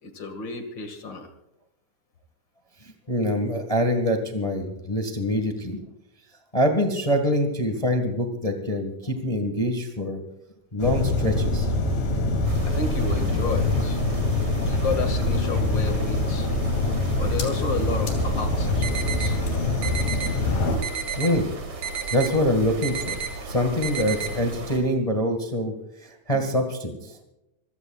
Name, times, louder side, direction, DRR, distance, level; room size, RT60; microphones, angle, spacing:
voice 1, 0.0-1.3 12.6-14.0 14.4-16.5 17.2-19.4, left 4 dB, 40° left, 6 dB, 2.4 m, -32 dB
voice 2, 3.1-5.8 6.5-10.2 10.7-11.7 21.1-21.5 22.1-23.2 23.4-25.7 26.0-27.1, equal, 15° left, 5 dB, 1.1 m, -25 dB
sound 1, 10.8-20.8, left 2 dB, 90° left, 4.4 m, -24 dB
sound 2, 12.4-24.8, right 2 dB, 45° right, 4.2 m, -36 dB
sound 3, 18.8-19.3 19.8-20.3 20.8-21.3 21.8-22.3 22.8-23.3 23.8-24.3, right 8 dB, 85° right, 3.2 m, -31 dB
26.5 x 17.0 x 2.5 m, 0.88 s
omnidirectional pair, 3.9 m